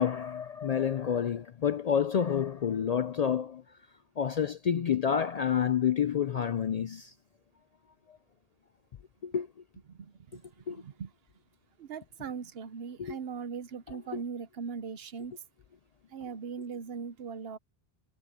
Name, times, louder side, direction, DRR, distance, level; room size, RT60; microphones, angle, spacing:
voice 1, 0.0-3.6 4.2-7.1 8.1-8.2 9.2-9.5 10.7-10.8 13.0-13.2, left 8 dB, 55° left, 0.4 m, -29 dB
voice 2, 9.9-11.1 11.8-15.3 16.1-17.6, right 6 dB, 70° right, 1.0 m, -40 dB
omnidirectional pair, 1.1 m